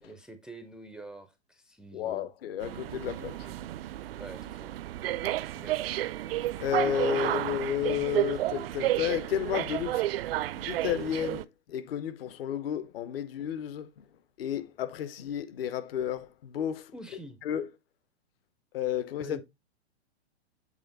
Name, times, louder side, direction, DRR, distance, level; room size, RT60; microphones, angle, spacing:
voice 1, 0.0-2.3 3.4-3.5 4.2-4.7 5.5-5.8 7.1-7.3 16.9-17.4 19.2-19.4, right 2 dB, ahead, 0.4 m, -46 dB
voice 2, 1.9-3.5 6.6-10.1 10.5-14.0 14.4-16.9 17.4-17.7 18.7-19.4, left 9 dB, 60° left, 1.0 m, -32 dB
sound 1, 2.6-11.4, right 14 dB, 60° right, 0.5 m, -32 dB
7.9 x 3.4 x 3.9 m
hypercardioid pair, 125°, 33 cm